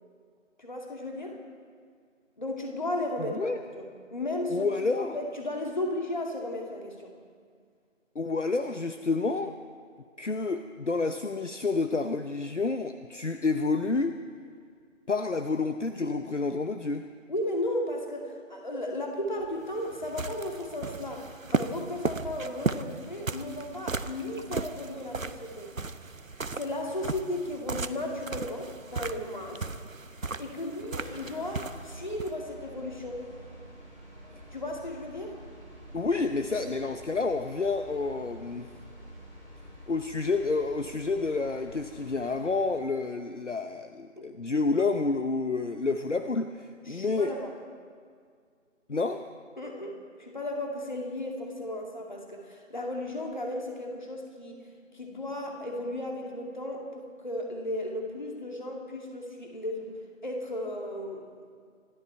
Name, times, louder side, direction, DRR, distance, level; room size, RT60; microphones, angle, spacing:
voice 1, 0.6-1.4 2.4-7.1 17.3-25.7 26.6-29.6 30.4-33.2 34.5-35.4 36.6-36.7 44.2-44.3 46.8-47.5 49.6-54.6 54.9-59.9 60.2-61.3, left 1 dB, 35° left, 1 dB, 2.5 m, -35 dB
voice 2, 3.2-3.6 4.5-5.2 8.1-9.6 10.2-14.2 15.1-17.1 35.9-38.7 39.9-47.3 48.9-49.3, left 3 dB, 65° left, 8 dB, 0.9 m, -29 dB
sound 1, 19.4-32.4, right 3 dB, 80° right, 0.9 m, -36 dB
sound 2, 30.8-42.7, equal, 5° right, 2.7 m, -48 dB
24.5 x 13.0 x 4.5 m, 2.1 s
figure-of-eight pair, 165°, 39 cm